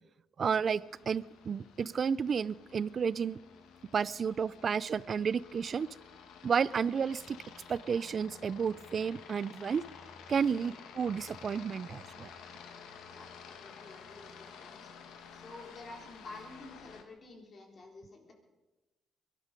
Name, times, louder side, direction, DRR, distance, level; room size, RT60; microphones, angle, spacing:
voice 1, 0.4-3.4 3.9-5.9 6.4-7.4 7.7-9.8 10.3-12.3, right 6 dB, 50° right, 20 dB, 0.4 m, -31 dB
Aircraft, 0.7-17.0, left 6 dB, 85° left, 1.7 m, -52 dB
voice 2, 13.1-18.3, left 2 dB, 45° left, 2 dB, 4.0 m, -51 dB
22.0 x 12.5 x 5.3 m, 1.1 s
cardioid pair, 90°, 0 cm